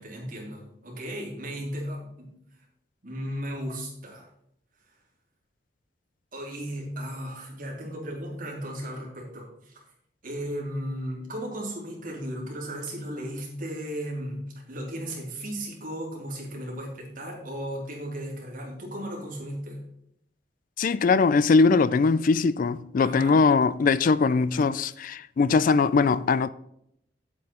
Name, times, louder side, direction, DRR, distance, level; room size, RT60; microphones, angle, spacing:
voice 1, 0.0-2.3 3.0-4.3 6.3-9.8 10.2-14.4 14.7-19.8 23.0-23.4, equal, 50° right, 3.1 m, -35 dB
voice 2, 20.8-26.5, left 4 dB, 50° left, 0.3 m, -21 dB
8.7 x 7.9 x 4.3 m
head